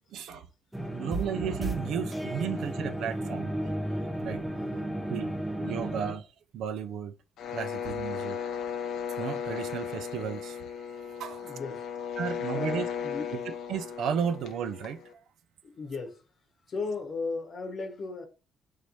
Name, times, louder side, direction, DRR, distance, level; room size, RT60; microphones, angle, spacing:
voice 1, 0.1-0.5 0.9-3.5 4.2-4.4 5.1-6.3 6.5-7.1 7.5-8.4 9.2-11.6 12.2-12.9 13.3-15.0, right 7 dB, 65° right, 0.4 m, -34 dB
sound 1, 0.7-6.1, right 1 dB, 5° right, 0.6 m, -33 dB
sound 2, 7.4-15.1, left 7 dB, 65° left, 0.6 m, -36 dB
voice 2, 11.4-11.9 12.5-13.4 15.6-16.2 16.7-18.3, left 3 dB, 35° left, 0.9 m, -35 dB
4.1 x 3.1 x 3.0 m
cardioid pair, 175°, 0 cm